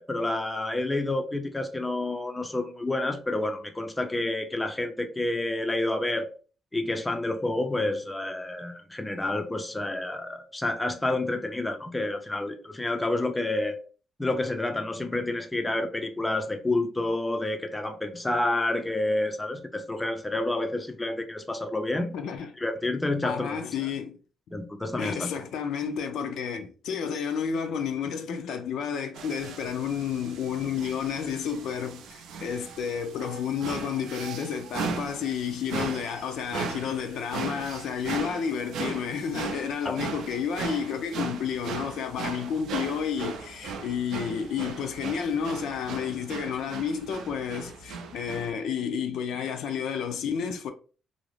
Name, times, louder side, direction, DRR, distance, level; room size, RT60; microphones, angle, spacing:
voice 1, 0.0-6.3 6.7-13.8 14.2-22.1 22.6-23.6 24.5-25.4 39.8-40.0, left 2 dB, 10° left, 0.4 m, -29 dB
voice 2, 22.1-22.5 23.2-24.2 25.0-50.7, left 7 dB, 80° left, 0.4 m, -31 dB
sound 1, 29.1-48.5, right 5 dB, 85° right, 0.4 m, -38 dB
2.5 x 2.0 x 3.0 m
cardioid pair, 120°, 0 cm